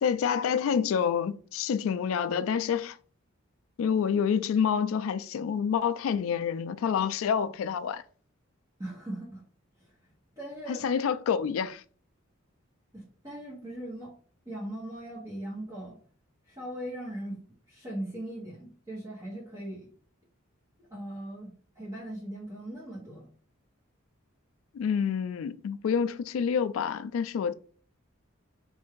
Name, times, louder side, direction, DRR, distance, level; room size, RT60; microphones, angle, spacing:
voice 1, 0.0-3.0 3.8-8.0 10.7-11.8 24.7-27.5, left 7 dB, 75° left, 0.3 m, -28 dB
voice 2, 8.8-9.4 9.8-9.9 10.4-10.8 12.9-14.1 14.4-16.0 16.5-17.4 17.7-19.9 20.9-23.3, right 1 dB, 20° right, 1.1 m, -39 dB
3.3 x 2.6 x 3.7 m
head